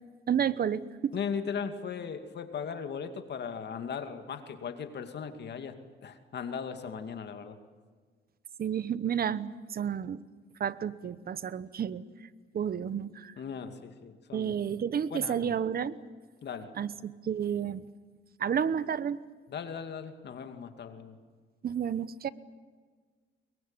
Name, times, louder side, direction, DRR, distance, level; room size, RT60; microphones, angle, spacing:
voice 1, 0.3-1.1 8.6-10.2 10.6-12.0 12.5-13.3 14.3-16.0 16.8-17.8 18.4-19.2 21.6-22.3, right 8 dB, 50° right, 16 dB, 1.1 m, -31 dB
voice 2, 1.1-5.8 6.0-7.6 13.4-14.6 15.1-15.6 16.4-16.7 19.5-21.2, left 6 dB, 60° left, 7 dB, 2.5 m, -38 dB
23.5 x 22.5 x 9.0 m, 1.5 s
cardioid pair, 90°, 20 cm